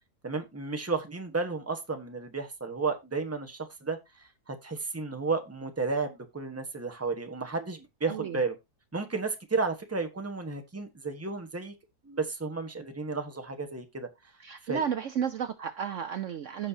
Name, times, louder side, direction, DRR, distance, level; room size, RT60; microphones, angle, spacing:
voice 1, 0.2-8.5 8.9-11.7 12.0-14.1 14.6-14.8, right 4 dB, 10° right, 1.1 m, -33 dB
voice 2, 8.0-8.4 14.4-16.7, right 8 dB, 60° right, 0.9 m, -33 dB
15.5 x 5.4 x 2.8 m
omnidirectional pair, 1.6 m